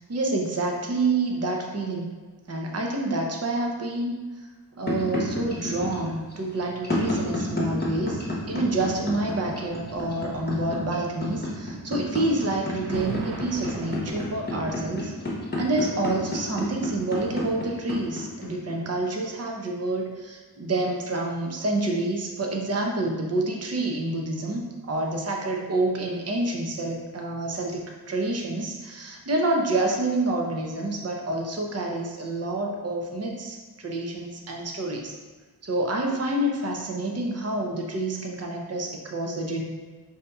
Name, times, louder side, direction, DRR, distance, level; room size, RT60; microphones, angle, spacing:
voice 1, 0.1-2.1 2.5-4.2 4.8-15.1 15.5-27.8 28.1-35.1 35.6-39.6, right 2 dB, 40° right, 1 dB, 0.6 m, -28 dB
sound 1, 4.9-19.4, left 2 dB, 25° left, 1.0 m, -29 dB
sound 2, 5.4-18.2 18.9-19.0, right 3 dB, 85° right, 0.5 m, -43 dB
5.0 x 2.7 x 2.3 m, 1.3 s
wide cardioid pair, 65°, 39 cm